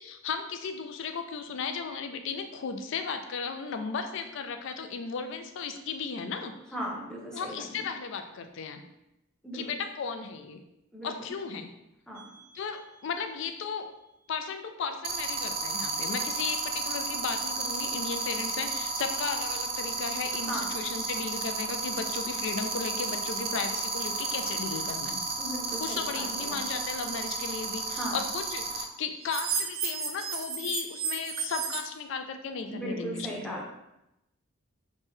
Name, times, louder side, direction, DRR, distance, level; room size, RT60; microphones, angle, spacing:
voice 1, 0.0-6.5 7.3-8.8 9.5-10.6 11.0-11.7 12.5-13.9 14.3-25.2 25.8-33.5, left 5 dB, 65° left, 7 dB, 0.4 m, -35 dB
voice 2, 6.7-7.8 9.4-9.7 10.9-11.3 12.1-12.2 20.5-20.7 25.4-26.6 27.9-28.2 32.7-33.7, equal, 5° left, -3 dB, 0.6 m, -37 dB
sound 1, 12.2-12.4 15.0-28.8 29.3-31.8, right 5 dB, 45° right, 0.5 m, -32 dB
3.1 x 2.7 x 3.6 m, 0.88 s
head